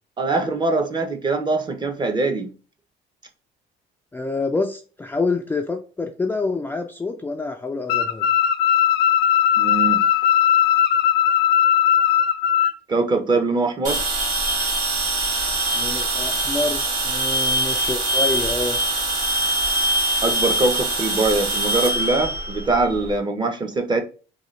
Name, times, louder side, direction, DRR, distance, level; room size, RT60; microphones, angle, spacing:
voice 1, 0.2-2.5 9.6-10.0 12.9-14.0 20.2-24.0, right 3 dB, 25° right, 0.7 m, -22 dB
voice 2, 4.1-8.3 15.7-18.8, left 3 dB, 10° left, 0.3 m, -27 dB
sound 1, 7.9-12.7, left 10 dB, 90° left, 0.4 m, -18 dB
sound 2, 13.8-23.1, right 1 dB, 50° right, 1.8 m, -23 dB
3.8 x 2.3 x 3.1 m
cardioid pair, 110°, 17 cm